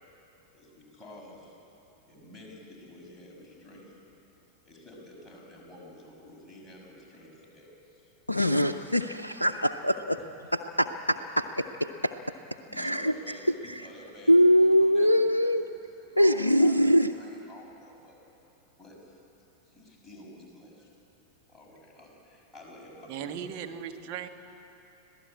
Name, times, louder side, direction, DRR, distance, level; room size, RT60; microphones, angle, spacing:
voice 1, 0.5-1.6 2.1-4.0 4.6-8.6 12.7-16.8 17.1-18.2 18.8-19.2 19.6-20.9 21.5-23.5, left 1 dB, 5° left, -4 dB, 6.4 m, -50 dB
voice 2, 8.3-10.2 10.5-12.1 12.8-13.1 14.3-15.6 16.2-17.1, equal, 85° left, 5 dB, 0.6 m, -23 dB
voice 3, 23.1-24.3, right 9 dB, 45° right, 5 dB, 1.5 m, -37 dB
25.5 x 16.5 x 8.5 m, 3.0 s
figure-of-eight pair, 90°, 0 cm